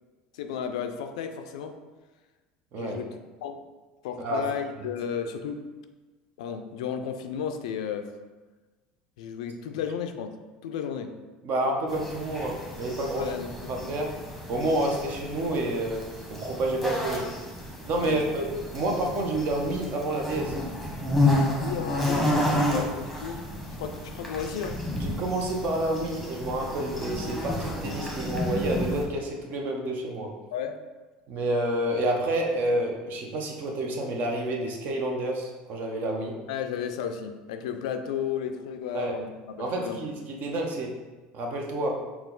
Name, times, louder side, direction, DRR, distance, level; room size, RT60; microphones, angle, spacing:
voice 1, 0.3-1.8 2.8-3.6 4.0-5.7 6.4-8.1 9.2-10.3 10.6-11.1 13.2-14.0 18.0-18.2 21.5-23.4 23.7-24.8 30.5-30.8 36.5-40.0, left 7 dB, 85° left, 7 dB, 0.3 m, -33 dB
voice 2, 11.4-13.3 13.7-14.1 14.5-17.3 17.9-18.5 18.7-20.6 22.7-22.9 25.0-30.3 31.3-36.4 38.9-39.2 39.6-41.0 41.3-42.0, right 1 dB, 55° right, 1 dB, 0.8 m, -29 dB
sound 1, 11.9-29.0, left 1 dB, ahead, 1.0 m, -31 dB
4.2 x 2.3 x 3.8 m, 1.3 s
supercardioid pair, 95°, 4 cm